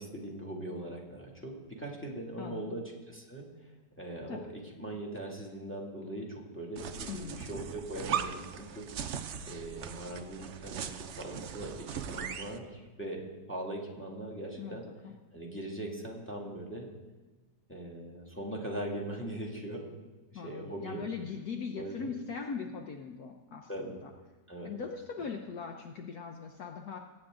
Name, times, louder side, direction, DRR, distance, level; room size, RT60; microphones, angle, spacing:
voice 1, 0.0-8.9 9.5-14.8 15.3-16.9 17.7-19.8 20.3-21.0 21.8-22.1 23.7-24.0 24.5-24.7, right 1 dB, 5° left, -1 dB, 2.1 m, -40 dB
voice 2, 2.4-2.8 4.3-4.4 7.1-7.6 14.6-15.1 20.3-24.1 24.6-27.0, left 6 dB, 65° left, 3 dB, 1.2 m, -40 dB
sound 1, 6.8-12.6, right 8 dB, 60° right, 0.7 m, -39 dB
22.0 x 8.8 x 3.8 m, 1.2 s
omnidirectional pair, 1.9 m